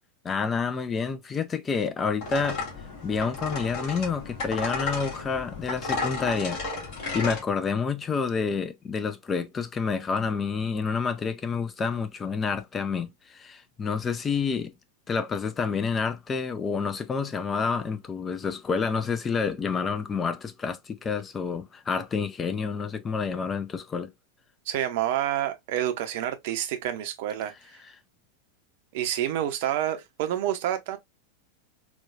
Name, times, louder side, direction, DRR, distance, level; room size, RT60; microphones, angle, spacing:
voice 1, 0.2-2.6 3.0-6.6 7.1-14.7 15.1-24.1, left 5 dB, 20° left, 0.4 m, -28 dB
sound 1, 2.2-7.4, left 3 dB, 45° left, 1.8 m, -33 dB
voice 2, 24.7-27.5 28.9-31.0, right 11 dB, 50° right, 0.6 m, -28 dB
4.3 x 2.3 x 2.3 m
figure-of-eight pair, 90°, 0 cm